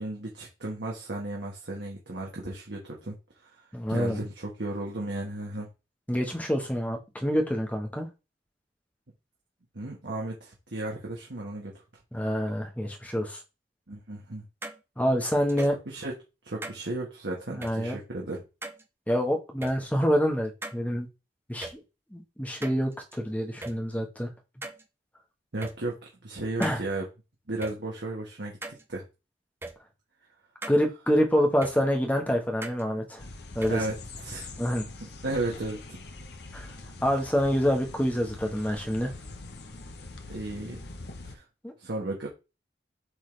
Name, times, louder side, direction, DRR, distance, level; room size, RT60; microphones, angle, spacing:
voice 1, 0.0-3.1 3.9-5.7 9.7-11.8 13.9-14.4 15.9-16.1 16.4-18.4 25.5-27.0 27.5-28.5 28.9-29.0 33.7-34.5 35.0-36.0 40.3-40.8 41.3-41.4 41.8-42.3, right 2 dB, 80° right, -2 dB, 1.4 m, -34 dB
voice 2, 3.7-4.2 6.1-8.1 12.1-13.4 15.0-15.7 17.5-18.0 19.1-21.1 21.5-21.7 22.1-24.3 26.6-26.8 30.7-33.2 33.5-33.8 34.6-34.9 36.5-36.7 37.0-39.1 41.6-41.7, equal, 10° left, 2 dB, 1.2 m, -26 dB
sound 1, 14.6-14.8 15.5-15.8 16.6-16.8 17.6-17.7 18.6-18.8 19.6-19.7 20.6-20.8 21.6-21.7 22.6-23.2 23.6-23.7 24.6-24.8 25.6-25.7 26.6-26.8 27.6-27.7 28.6-28.8 29.6-29.7 30.6-30.8 31.6-31.7 32.6-32.8 33.6-33.7, right 2 dB, 15° right, 0.6 m, -38 dB
sound 2, 33.2-41.4, left 2 dB, 65° left, 0.9 m, -43 dB
7.8 x 3.9 x 3.3 m, 0.28 s
head